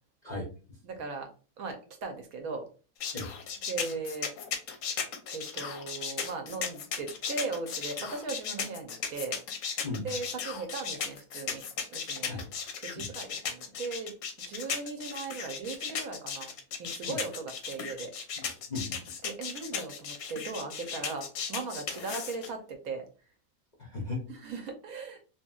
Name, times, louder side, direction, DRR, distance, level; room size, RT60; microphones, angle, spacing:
voice 1, 0.8-1.3 1.6-2.6 3.7-4.3 5.3-9.4 10.0-11.6 11.9-12.3 12.8-16.5 16.8-18.1 19.2-23.1 24.3-25.2, right 4 dB, 70° right, 5 dB, 1.0 m, -38 dB
sound 1, 3.0-22.5, left 6 dB, 70° left, 0.8 m, -36 dB
voice 2, 9.8-10.1 12.3-12.5 13.0-13.1 17.1-17.2 18.4-19.0 23.8-24.2, left 3 dB, 50° left, -3 dB, 0.5 m, -36 dB
2.9 x 2.8 x 2.2 m, 0.36 s
omnidirectional pair, 1.7 m